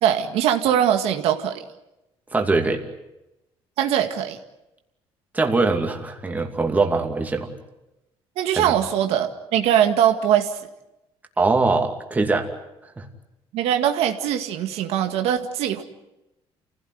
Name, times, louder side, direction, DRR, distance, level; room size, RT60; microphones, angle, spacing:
voice 1, 0.0-1.6 3.8-4.4 8.4-10.6 13.5-15.8, right 10 dB, 85° right, 6 dB, 2.0 m, -21 dB
voice 2, 2.3-2.8 5.3-7.5 8.5-8.8 11.4-12.5 12.8-13.1, right 3 dB, 15° right, 3 dB, 2.6 m, -22 dB
29.0 x 16.5 x 9.6 m, 0.94 s
cardioid pair, 140°, 10 cm